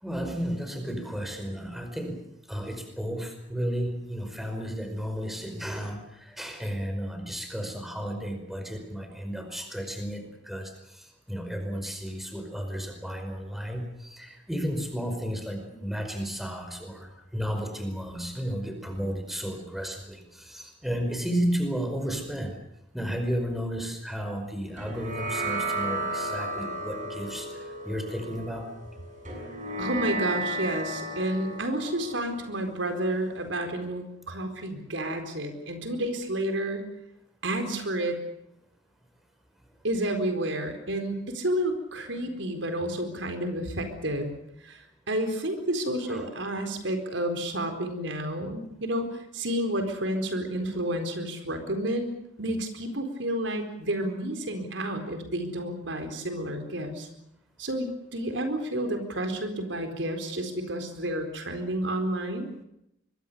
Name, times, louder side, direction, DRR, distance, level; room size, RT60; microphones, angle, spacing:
voice 1, 0.0-2.2 2.5-22.6 22.9-28.7 42.2-42.3 46.1-46.2, equal, ahead, 5 dB, 5.1 m, -33 dB
sound 1, 24.8-33.5, right 2 dB, 40° right, 7.4 m, -34 dB
voice 2, 29.8-36.9 37.4-38.2 39.8-44.3 44.6-44.8 45.1-52.1 52.4-57.1 57.6-62.5, right 1 dB, 85° right, 6 dB, 4.4 m, -30 dB
25.0 x 22.0 x 6.9 m, 0.82 s
head